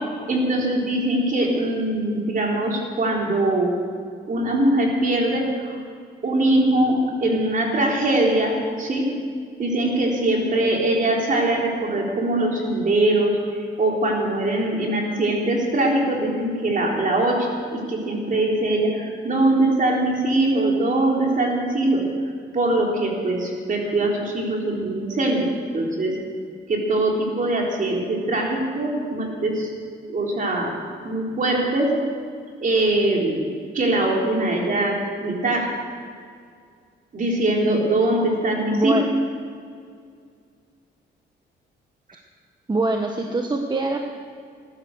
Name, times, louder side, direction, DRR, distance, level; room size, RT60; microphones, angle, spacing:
voice 1, 0.3-3.7 4.3-5.8 6.2-9.0 9.6-13.4 13.8-22.0 22.5-25.5 25.7-26.2 26.7-29.7 30.1-30.7 31.0-31.9 32.6-33.4 33.7-35.7 37.1-39.0, right 1 dB, 40° right, -1 dB, 3.8 m, -22 dB
voice 2, 38.7-39.0 42.7-44.0, right 2 dB, 20° right, 3 dB, 1.2 m, -23 dB
16.0 x 11.5 x 6.5 m, 2.2 s
cardioid pair, 90°, 20 cm